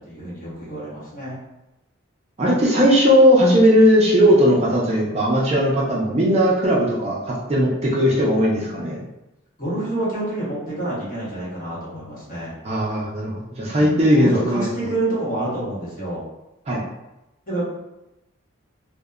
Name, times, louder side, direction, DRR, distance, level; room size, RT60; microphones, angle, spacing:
voice 1, 0.0-1.4 9.6-12.5 13.6-16.2 17.5-17.6, right 2 dB, 40° left, -8 dB, 0.9 m, -28 dB
voice 2, 2.4-9.0 12.6-14.9 16.7-16.8, equal, 30° right, -5 dB, 0.4 m, -18 dB
2.7 x 2.0 x 2.3 m, 0.94 s
head